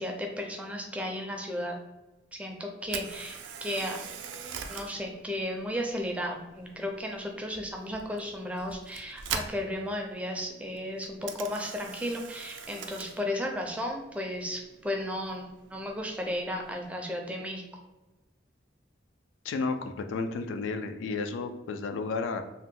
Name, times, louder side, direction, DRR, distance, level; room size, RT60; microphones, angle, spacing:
voice 1, 0.0-1.8 2.3-4.0 4.7-17.6, left 1 dB, 5° right, 1 dB, 0.4 m, -34 dB
Camera, 2.8-16.9, right 6 dB, 80° right, 0.4 m, -44 dB
voice 2, 19.4-22.4, left 4 dB, 90° left, 7 dB, 0.3 m, -32 dB
2.7 x 2.1 x 3.6 m, 1.1 s
head